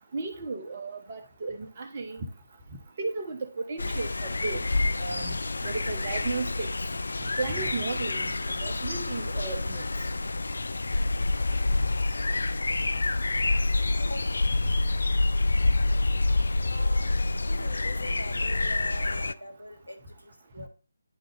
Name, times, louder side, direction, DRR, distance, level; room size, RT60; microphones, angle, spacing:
voice 1, 0.1-2.3 3.0-4.6 5.0-5.4 5.6-6.7 7.4-8.3 8.6-9.8, right 3 dB, 35° right, 1.2 m, -34 dB
sound 1, 3.8-19.3, left 2 dB, 65° left, 0.4 m, -27 dB
voice 2, 14.0-14.4 16.6-20.7, equal, 90° left, 1.6 m, -43 dB
10.0 x 3.9 x 3.4 m
figure-of-eight pair, 150°, 0 cm